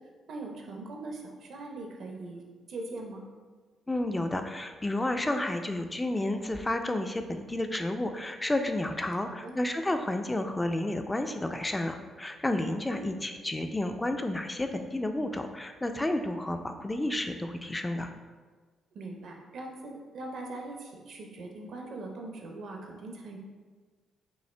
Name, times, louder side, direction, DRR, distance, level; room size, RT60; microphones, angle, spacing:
voice 1, 0.3-2.4 2.7-3.2 9.2-9.6 12.9-13.1 18.9-23.4, right 2 dB, 65° right, 1 dB, 0.7 m, -41 dB
voice 2, 3.9-18.1, left 1 dB, 15° left, 7 dB, 0.4 m, -31 dB
5.5 x 2.4 x 3.3 m, 1.4 s
cardioid pair, 90°, 0 cm